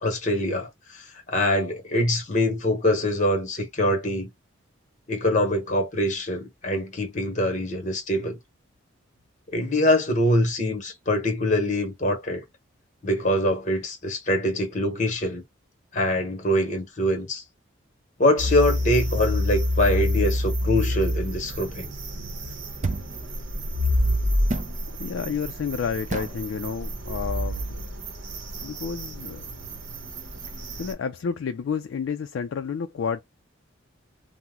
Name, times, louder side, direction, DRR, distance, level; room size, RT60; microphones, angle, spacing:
voice 1, 0.0-4.3 5.1-8.4 9.5-12.4 13.0-15.4 15.9-17.4 18.2-21.9, left 1 dB, 35° left, 1.0 m, -24 dB
sound 1, 18.4-30.9, left 1 dB, 60° right, 0.8 m, -28 dB
sound 2, 22.8-23.2 24.5-24.8 26.1-26.4, right 3 dB, 35° right, 0.4 m, -29 dB
voice 2, 25.0-27.6 28.6-29.5 30.8-33.2, left 6 dB, 65° left, 0.3 m, -30 dB
2.8 x 2.0 x 3.6 m
head